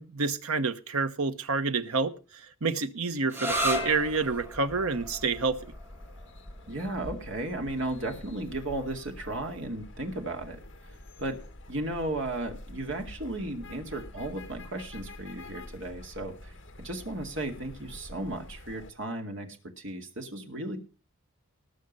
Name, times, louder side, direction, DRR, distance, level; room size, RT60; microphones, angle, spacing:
voice 1, 0.0-5.6, right 4 dB, 80° right, 1.0 m, -28 dB
sound 1, 3.3-10.7, right 1 dB, 10° right, 1.3 m, -37 dB
sound 2, 3.5-18.9, left 2 dB, 55° left, 1.8 m, -45 dB
voice 2, 6.7-10.6 11.2-11.4 11.7-20.8, right 1 dB, 55° right, 2.3 m, -35 dB
19.0 x 6.5 x 5.4 m
head